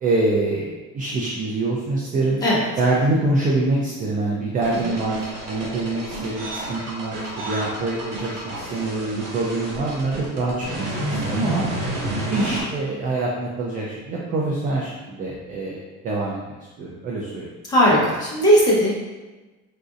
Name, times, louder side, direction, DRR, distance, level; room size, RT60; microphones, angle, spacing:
voice 1, 0.0-2.4 2.8-10.9 11.3-11.7 12.3-16.4 16.8-17.5 18.0-18.1, right 2 dB, 30° right, -4 dB, 0.3 m, -25 dB
sound 1, 4.6-12.6, right 1 dB, 70° right, 1.1 m, -30 dB
voice 2, 17.7-18.9, equal, 15° left, -7 dB, 0.9 m, -18 dB
4.0 x 2.6 x 2.4 m, 1.2 s
cardioid pair, 165°, 31 cm